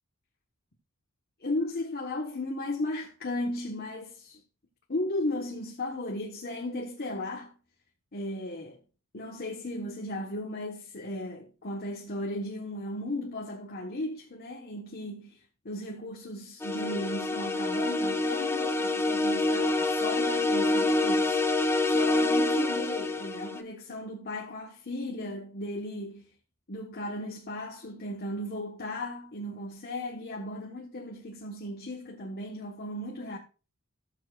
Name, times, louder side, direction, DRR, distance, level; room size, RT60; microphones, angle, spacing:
voice 1, 1.4-4.4 4.9-7.5 8.1-8.8 9.1-26.3 26.7-33.4, left 1 dB, 45° left, 1.3 m, -36 dB
sound 1, 16.6-23.6, left 2 dB, 10° left, 0.7 m, -26 dB
18.0 x 7.4 x 2.5 m
head